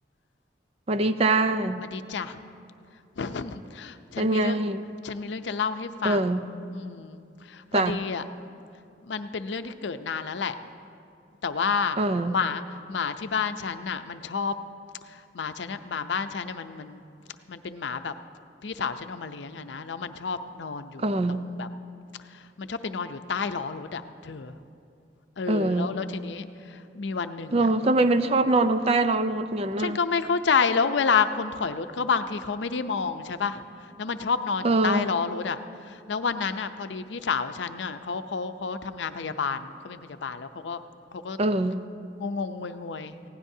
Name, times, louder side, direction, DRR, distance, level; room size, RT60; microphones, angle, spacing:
voice 1, 0.9-1.8 4.2-4.9 6.0-6.4 7.7-8.0 12.0-12.4 21.0-21.5 25.5-26.0 27.5-30.0 34.6-35.1 41.4-41.8, right 2 dB, 35° right, 10 dB, 0.5 m, -23 dB
voice 2, 1.9-2.4 3.2-4.6 5.0-6.4 6.7-8.2 9.1-10.6 11.4-12.0 12.3-12.6 12.9-14.5 15.1-17.0 17.5-18.1 18.6-21.0 21.3-21.7 22.6-24.5 25.4-27.7 29.8-33.6 34.0-35.6 35.9-40.8 41.1-41.4 42.2-43.1, left 5 dB, 85° left, 10 dB, 0.6 m, -30 dB
20.0 x 16.5 x 2.7 m, 2.5 s
head